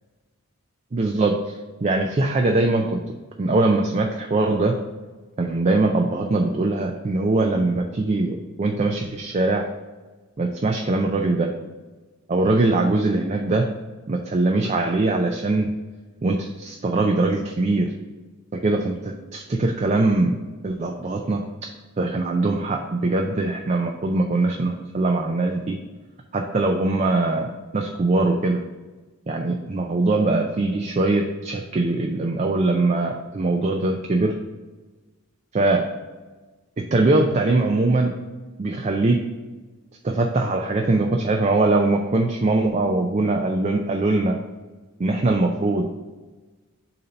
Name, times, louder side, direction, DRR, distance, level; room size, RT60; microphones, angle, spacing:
voice 1, 0.9-3.0 3.4-4.8 5.4-9.6 10.4-11.5 12.3-13.7 14.1-15.7 16.2-17.9 18.5-20.4 20.6-21.4 22.0-25.8 26.3-28.6 29.3-34.3 35.5-35.9 36.9-38.1 38.6-39.2 40.0-44.4 45.0-45.9, right 2 dB, 30° right, 2 dB, 0.4 m, -22 dB
6.7 x 2.8 x 5.2 m, 1.3 s
head